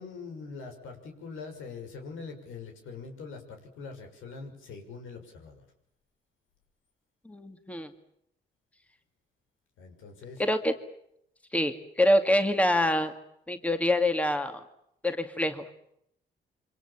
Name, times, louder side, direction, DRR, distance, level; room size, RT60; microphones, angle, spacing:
voice 1, 0.0-5.6 9.8-10.4, left 4 dB, 80° left, 4 dB, 6.6 m, -43 dB
voice 2, 7.3-7.9 10.4-10.7 11.5-13.1 13.5-14.6 15.0-15.6, left 1 dB, 5° left, 7 dB, 2.3 m, -25 dB
27.5 x 25.0 x 7.4 m, 0.75 s
cardioid pair, 90°, 20 cm